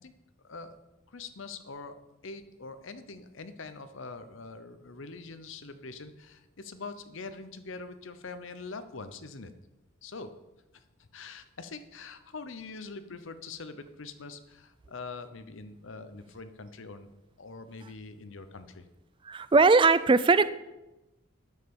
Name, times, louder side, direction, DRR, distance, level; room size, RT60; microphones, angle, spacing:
voice 1, 1.1-1.9 2.2-9.5 10.0-10.3 10.7-10.8 11.1-17.1 17.4-18.9, left 4 dB, 65° left, 11 dB, 0.8 m, -43 dB
voice 2, 19.3-20.5, right 4 dB, 25° right, 15 dB, 0.4 m, -20 dB
9.7 x 6.6 x 7.0 m, 0.98 s
head